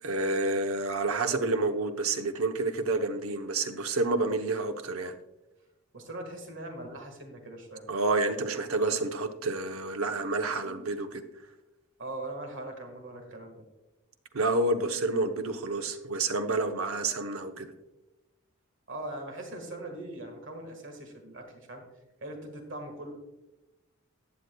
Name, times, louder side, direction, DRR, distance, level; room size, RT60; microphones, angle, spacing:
voice 1, 0.0-5.1 7.9-11.2 14.3-17.7, right 3 dB, 85° right, 7 dB, 0.9 m, -29 dB
voice 2, 5.9-7.9 12.0-13.7 17.6-17.7 18.9-21.8 22.2-23.1, right 1 dB, 60° right, 4 dB, 1.6 m, -41 dB
14.5 x 9.5 x 2.3 m, 0.99 s
head